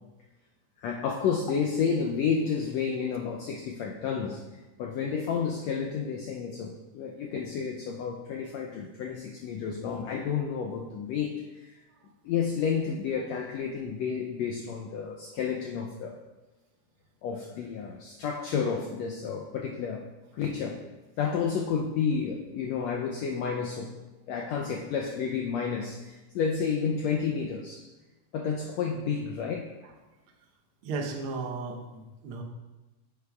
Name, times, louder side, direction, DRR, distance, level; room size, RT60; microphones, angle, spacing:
voice 1, 0.8-4.4 4.8-11.7 12.2-16.2 17.2-20.1 20.3-20.8 21.2-23.9 24.3-27.9 28.3-29.7, left 6 dB, 85° left, 1 dB, 1.5 m, -31 dB
voice 2, 30.8-32.4, right 4 dB, 80° right, 1 dB, 1.2 m, -35 dB
9.7 x 8.0 x 2.3 m, 1.1 s
omnidirectional pair, 3.6 m